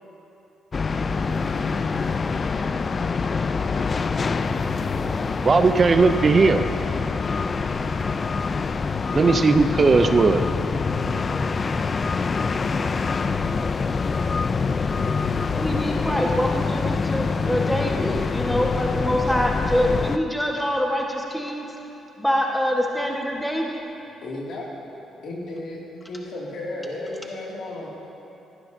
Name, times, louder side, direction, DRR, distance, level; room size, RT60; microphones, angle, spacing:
sound 1, 0.7-20.2, left 4 dB, 35° left, 0.4 m, -25 dB
voice 1, 5.4-6.6 9.1-10.4, right 4 dB, 35° right, 8 dB, 0.4 m, -17 dB
voice 2, 15.6-21.7 22.2-23.8, equal, 5° left, -1 dB, 1.3 m, -25 dB
voice 3, 24.2-24.7 25.2-25.8 26.1-27.9, left 2 dB, 70° left, -3 dB, 2.3 m, -33 dB
14.5 x 11.5 x 2.7 m, 2.8 s
cardioid pair, 90°, 0 cm